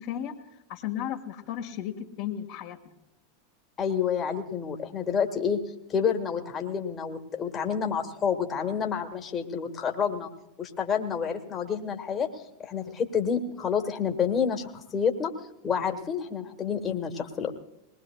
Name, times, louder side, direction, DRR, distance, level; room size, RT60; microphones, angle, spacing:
voice 1, 0.0-2.9, left 10 dB, 50° left, 2 dB, 1.6 m, -35 dB
voice 2, 3.8-5.6 5.9-10.3 10.6-15.3 15.6-17.5, left 7 dB, 25° left, 3 dB, 1.7 m, -29 dB
21.5 x 19.5 x 2.3 m, 0.92 s
figure-of-eight pair, 85°, 0 cm